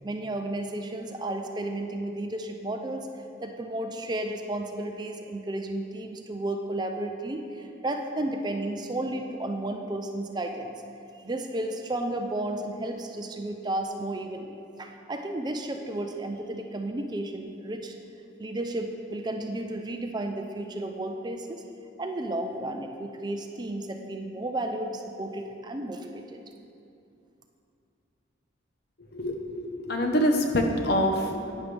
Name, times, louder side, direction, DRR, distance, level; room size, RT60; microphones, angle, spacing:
voice 1, 0.0-3.1 3.4-10.8 11.1-18.0 18.4-21.6 22.0-26.4, right 1 dB, 20° right, 4 dB, 0.4 m, -33 dB
voice 2, 29.1-31.5, equal, 55° left, 3 dB, 0.9 m, -25 dB
11.0 x 9.5 x 3.4 m, 2.6 s
head